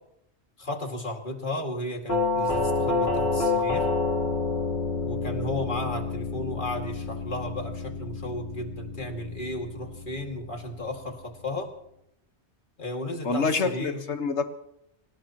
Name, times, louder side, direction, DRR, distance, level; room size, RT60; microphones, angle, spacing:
voice 1, 0.6-3.9 5.0-11.7 12.8-14.0, left 1 dB, 50° left, 2 dB, 2.4 m, -34 dB
Doorbell, 2.1-10.9, left 3 dB, 65° left, 3.8 m, -29 dB
voice 2, 13.2-14.5, left 4 dB, 90° left, 8 dB, 1.6 m, -26 dB
25.5 x 17.5 x 3.0 m, 0.79 s
omnidirectional pair, 1.1 m